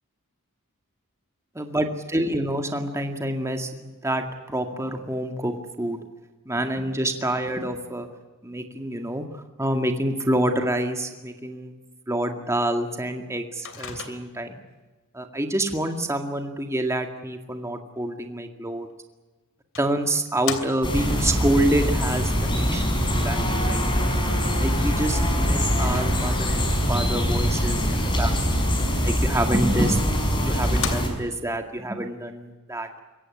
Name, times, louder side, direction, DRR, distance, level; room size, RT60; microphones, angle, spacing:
voice 1, 1.6-6.0 6.5-8.1 8.4-11.7 12.1-14.6 15.1-18.9 19.8-23.8 24.6-28.3 29.0-30.0 30.3-32.9, right 1 dB, 15° right, 5 dB, 2.1 m, -27 dB
Microwave oven, 13.6-14.5 18.9-19.0 19.7-21.1 25.7-26.6 29.7-29.8 30.3-30.4 30.6-31.5, left 7 dB, 60° left, 2.9 m, -35 dB
sound 1, 20.8-31.1, equal, 20° left, 5.5 m, -23 dB
23.5 x 17.0 x 9.9 m, 1.2 s
head